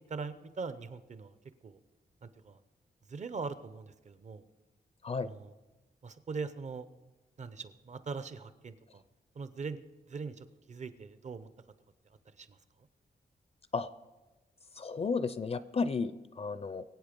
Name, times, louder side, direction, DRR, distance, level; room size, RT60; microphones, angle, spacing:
voice 1, 0.1-1.4 1.6-1.8 2.2-2.6 3.1-4.4 5.2-5.5 6.0-6.9 7.4-9.0 9.4-9.8 10.1-11.5 12.4-12.6, right 4 dB, 45° right, 13 dB, 0.7 m, -41 dB
voice 2, 14.8-16.8, left 4 dB, 40° left, 14 dB, 0.4 m, -33 dB
22.0 x 8.5 x 5.2 m, 1.1 s
wide cardioid pair, 155°, 16 cm